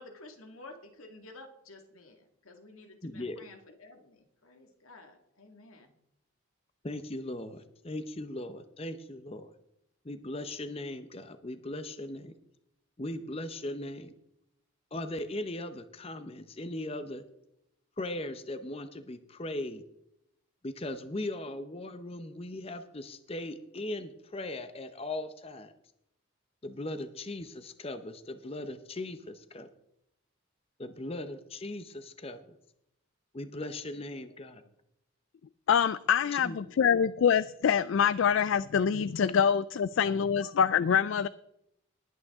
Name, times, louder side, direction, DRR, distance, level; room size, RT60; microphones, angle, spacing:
voice 1, 0.0-6.0 33.9-34.7 36.2-36.9, left 2 dB, 85° left, 4 dB, 1.9 m, -52 dB
voice 2, 3.0-3.4 6.8-9.5 10.0-12.3 13.0-14.1 14.9-17.2 18.0-19.8 20.6-25.7 26.6-29.7 30.8-32.6 33.3-34.6 36.3-36.5, left 1 dB, 25° left, 9 dB, 0.7 m, -38 dB
voice 3, 35.7-41.3, left 7 dB, 65° left, 17 dB, 0.3 m, -25 dB
20.0 x 8.9 x 3.6 m, 0.81 s
head